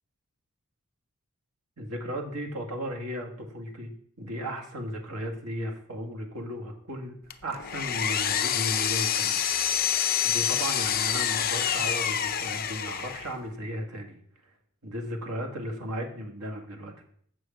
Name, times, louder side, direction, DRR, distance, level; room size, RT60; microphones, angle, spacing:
voice 1, 1.8-3.9 4.2-9.4 10.2-14.2 14.4-14.5 14.8-17.1, equal, 85° right, 3 dB, 2.0 m, -35 dB
Power tool, 7.3-13.4, left 9 dB, 40° left, 0.6 m, -27 dB
7.6 x 6.4 x 7.3 m, 0.63 s
head